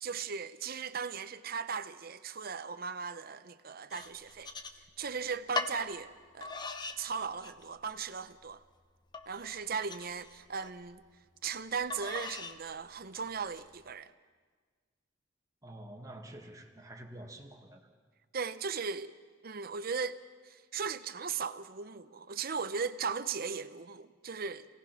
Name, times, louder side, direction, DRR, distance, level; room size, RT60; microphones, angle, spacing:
voice 1, 0.0-4.5 5.0-6.6 7.0-8.6 9.3-11.0 11.4-14.1 18.3-19.1 19.4-20.2 20.4-24.7, right 5 dB, 55° right, 0.8 m, -37 dB
Wooden Spatula, 3.9-5.1 5.6-5.8 6.4-7.0 7.4-7.9 8.4-8.5 9.1-10.7 11.9-12.6 13.2-13.6, left 3 dB, 25° left, 1.0 m, -40 dB
voice 2, 15.6-17.8, right 1 dB, 20° right, 2.0 m, -48 dB
27.5 x 17.5 x 6.0 m
head